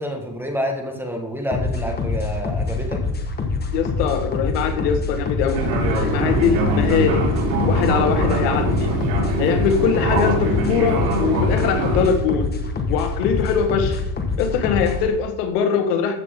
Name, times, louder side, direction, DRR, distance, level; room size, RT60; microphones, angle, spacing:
voice 1, 0.0-3.0, equal, 5° right, 3 dB, 1.6 m, -28 dB
sound 1, 1.5-15.1, left 3 dB, 20° left, 1.5 m, -25 dB
voice 2, 3.7-7.2 7.7-8.9 9.4-12.5 12.9-14.0 14.4-16.1, left 7 dB, 75° left, 5 dB, 1.8 m, -22 dB
Fixed-wing aircraft airplane, 5.5-12.1, right 1 dB, 90° right, 3.6 m, -22 dB
14.5 x 6.4 x 3.8 m, 0.89 s
supercardioid pair, 125°, 48 cm